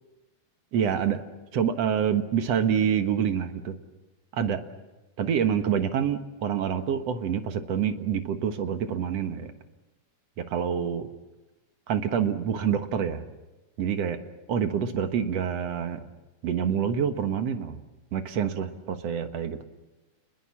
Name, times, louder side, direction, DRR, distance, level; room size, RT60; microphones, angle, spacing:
voice 1, 0.7-1.2 1.5-3.8 4.3-4.6 5.2-9.5 10.4-11.1 11.9-13.2 13.8-14.2 14.5-16.0 16.4-17.8 18.1-19.6, right 8 dB, 60° right, 8 dB, 2.3 m, -27 dB
29.0 x 21.5 x 7.3 m, 1.1 s
omnidirectional pair, 3.6 m